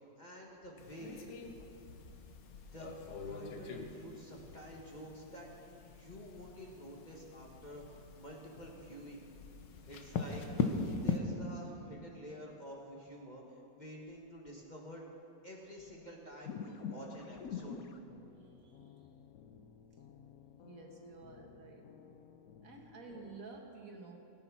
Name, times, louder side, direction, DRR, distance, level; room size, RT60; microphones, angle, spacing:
voice 1, 0.2-1.3 2.7-3.0 3.2-5.5 5.8-9.2 9.9-13.4 13.7-15.1 15.4-17.8, equal, 25° left, -2 dB, 1.4 m, -49 dB
sound 1, 0.8-11.2, left 5 dB, 90° left, 1.7 m, -41 dB
sound 2, 16.4-23.4, left 6 dB, 60° left, 1.1 m, -49 dB
voice 2, 18.4-19.1 20.6-21.9 22.6-24.2, right 3 dB, 55° right, 1 dB, 1.7 m, -52 dB
17.5 x 9.6 x 6.0 m, 2.9 s
omnidirectional pair, 1.9 m